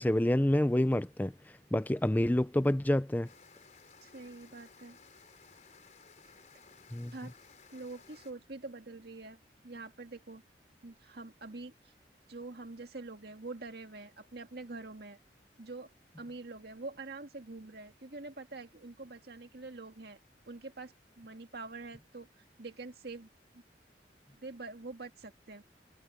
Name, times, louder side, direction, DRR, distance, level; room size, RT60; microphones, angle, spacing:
voice 1, 0.0-1.3 1.7-3.3 6.9-7.1, left 1 dB, 10° left, 0.5 m, -27 dB
sound 1, 3.2-8.3, left 5 dB, 45° left, 4.2 m, -58 dB
voice 2, 4.0-5.0 7.1-7.3 7.7-10.4 10.8-11.9 12.3-15.2 15.6-20.2 20.5-23.6 24.4-25.6, right 3 dB, 65° right, 1.9 m, -45 dB
head